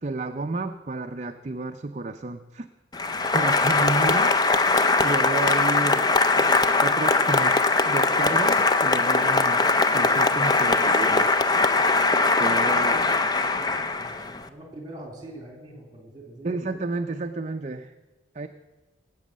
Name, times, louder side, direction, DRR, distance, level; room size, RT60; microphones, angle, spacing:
voice 1, 0.0-2.7 3.3-4.3 5.0-6.1 6.4-6.5 6.8-7.6 7.9-9.6 9.9-11.3 12.4-13.0 16.4-17.9 18.3-18.5, right 3 dB, 35° right, 6 dB, 0.5 m, -31 dB
Applause, 2.9-14.4, left 3 dB, 20° left, 0.5 m, -21 dB
voice 2, 12.6-16.5, right 1 dB, 20° right, 2 dB, 3.3 m, -45 dB
17.5 x 8.2 x 7.4 m, 1.2 s
head